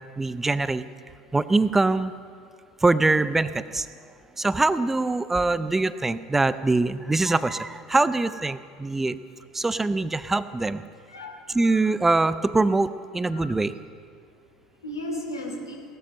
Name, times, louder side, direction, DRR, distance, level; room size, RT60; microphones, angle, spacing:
voice 1, 0.2-0.9 1.3-2.1 2.8-3.9 4.4-9.2 9.5-10.8 11.5-13.7, right 3 dB, 15° right, 14 dB, 0.6 m, -23 dB
voice 2, 11.1-11.8 13.3-13.6 14.8-15.8, left 1 dB, 85° left, 1 dB, 2.6 m, -35 dB
17.5 x 13.0 x 6.5 m, 2.1 s
figure-of-eight pair, 70°, 2 cm